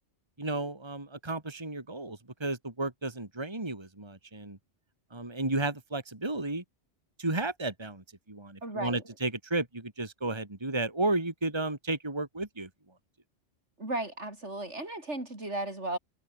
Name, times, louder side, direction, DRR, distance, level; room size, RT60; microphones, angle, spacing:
voice 1, 0.4-4.6 5.1-6.6 7.2-12.7, right 2 dB, 20° right, 2.4 m, -33 dB
voice 2, 8.6-9.0 13.8-16.0, right 2 dB, 75° right, 6.2 m, -35 dB
omnidirectional pair, 1.2 m